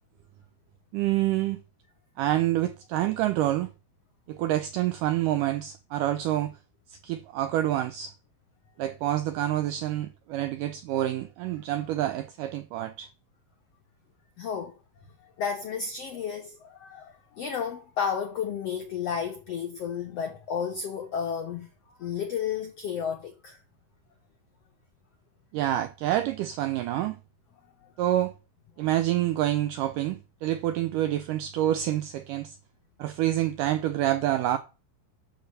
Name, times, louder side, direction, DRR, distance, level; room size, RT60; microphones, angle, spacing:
voice 1, 0.9-1.6 2.2-3.7 4.3-6.5 6.9-8.1 8.8-13.1 25.5-27.2 28.0-28.3 28.8-32.6 33.0-34.6, right 13 dB, 85° right, 1.8 m, -27 dB
voice 2, 14.4-14.7 15.2-23.6 27.8-27.9, left 7 dB, 80° left, 1.4 m, -32 dB
11.5 x 4.4 x 6.7 m
omnidirectional pair, 4.3 m